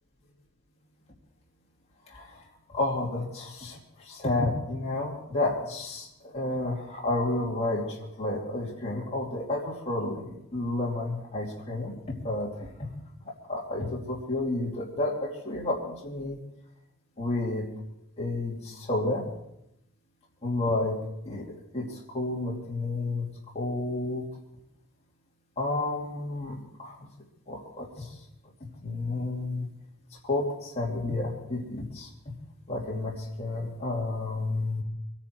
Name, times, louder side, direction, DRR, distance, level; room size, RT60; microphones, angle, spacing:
voice 1, 2.1-2.4 2.7-12.5 12.8-12.9 13.5-16.4 17.2-17.7 18.2-19.2 20.4-21.0 21.3-21.5 21.7-23.3 23.5-24.2 25.6-27.0 27.5-28.1 28.8-29.7 30.2-32.1 32.7-34.8, left 2 dB, 30° left, -4 dB, 2.8 m, -31 dB
24.0 x 10.0 x 4.6 m, 0.84 s
head